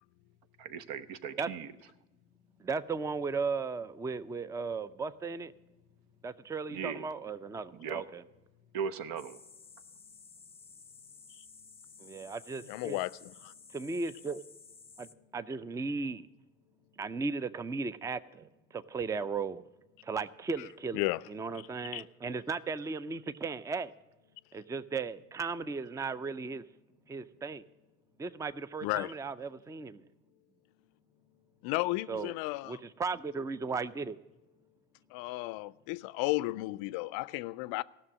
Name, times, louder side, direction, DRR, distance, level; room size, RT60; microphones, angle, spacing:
voice 1, 0.6-1.7 6.7-7.1 7.7-8.0 8.7-9.4, right 7 dB, 65° right, 0.9 m, -38 dB
voice 2, 2.6-5.5 6.2-8.2 12.0-13.0 13.7-14.4 15.0-16.3 17.0-19.7 20.0-21.0 21.3-23.9 24.5-26.6 27.1-27.6 28.2-30.1 32.1-32.3 32.7-34.2, right 4 dB, 10° right, 0.4 m, -36 dB
sound 1, 9.2-15.1, left 5 dB, 15° left, 0.8 m, -54 dB
voice 3, 12.6-13.5 20.9-21.2 21.9-22.0 28.8-29.1 31.6-32.8 35.1-37.8, left 20 dB, 65° left, 0.5 m, -33 dB
15.0 x 6.3 x 7.3 m
hypercardioid pair, 65°, 40 cm